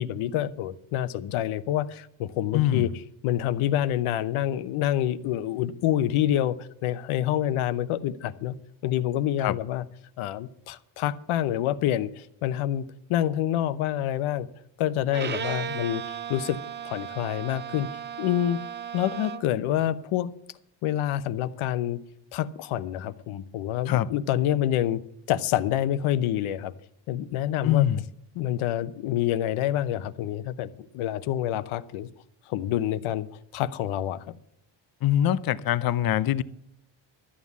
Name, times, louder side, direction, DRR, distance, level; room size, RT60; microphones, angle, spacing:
voice 1, 0.0-2.9 3.2-8.5 8.8-9.8 10.2-12.8 13.1-14.5 14.8-16.0 16.3-16.6 16.8-17.9 18.2-18.6 18.9-20.3 20.8-22.0 22.3-25.0 25.3-26.7 27.1-27.9 28.4-32.1 32.5-33.3 33.5-34.4, left 12 dB, 80° left, 14 dB, 0.9 m, -27 dB
voice 2, 2.5-2.9 9.4-9.6 23.9-24.1 27.6-28.0 35.0-36.4, left 11 dB, 45° left, 15 dB, 0.6 m, -23 dB
Bowed string instrument, 15.1-19.6, right 8 dB, 25° right, 0.4 m, -36 dB
13.0 x 7.4 x 8.2 m, 0.76 s
cardioid pair, 125°, 48 cm